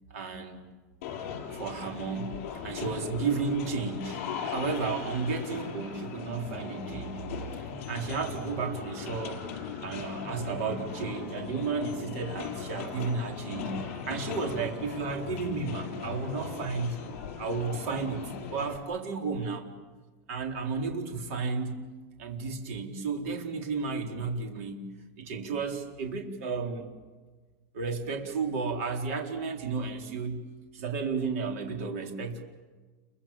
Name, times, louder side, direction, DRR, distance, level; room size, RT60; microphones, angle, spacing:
voice 1, 0.1-0.6 1.5-2.4 2.6-7.2 7.9-9.4 9.8-17.0 17.4-19.7 20.3-21.9 22.2-24.9 25.2-26.9 27.7-30.5 30.7-32.4, right 4 dB, 55° right, 3 dB, 3.9 m, -33 dB
sound 1, 1.0-18.8, left 7 dB, 55° left, 5.0 m, -39 dB
29.5 x 23.5 x 7.5 m, 1.3 s
supercardioid pair, 170°, 9 cm